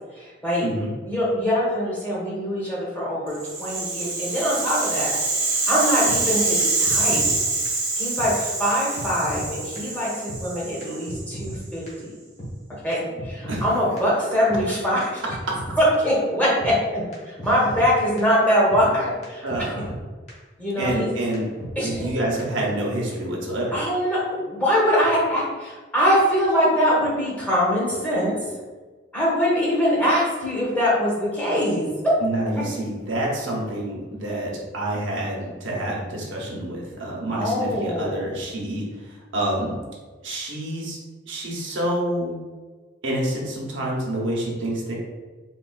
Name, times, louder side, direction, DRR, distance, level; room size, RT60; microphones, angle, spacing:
voice 1, 0.1-0.7 1.0-5.1 5.4-7.2 7.9-12.1 12.8-15.3 15.8-19.7 20.6-21.1 21.8-22.1 23.7-28.6 29.1-32.1 32.5-32.6 37.3-38.2, equal, 10° left, -7 dB, 0.8 m, -23 dB
Rattle (instrument), 3.3-11.5, right 3 dB, 50° right, 0.8 m, -25 dB
sound 1, 6.1-6.2 6.6-6.7 6.9-7.4 7.7-7.8 8.2-8.3 8.7-8.8 9.0-9.5 9.8-9.9 10.3-10.4 10.8-10.9 11.1-11.6 11.9-12.0 12.4-12.5 12.9-13.7 14.0-14.1 14.5-14.6 15.0-15.1 15.3-15.8 16.1-16.2 16.6-16.7 17.1-17.2 17.4-17.9 18.2-18.3 18.7-18.8 19.2-19.3 19.5-20.0 20.3-20.4 20.8-20.9 21.3-21.4 21.6-22.1 22.4-22.5, equal, 40° left, 0.8 m, -34 dB
voice 2, 19.4-19.8 20.8-21.5 21.8-23.8 32.2-39.7 40.2-41.0 41.3-42.3 43.0-44.9, right 1 dB, 80° right, -3 dB, 0.8 m, -27 dB
3.7 x 2.3 x 2.3 m, 1.3 s
head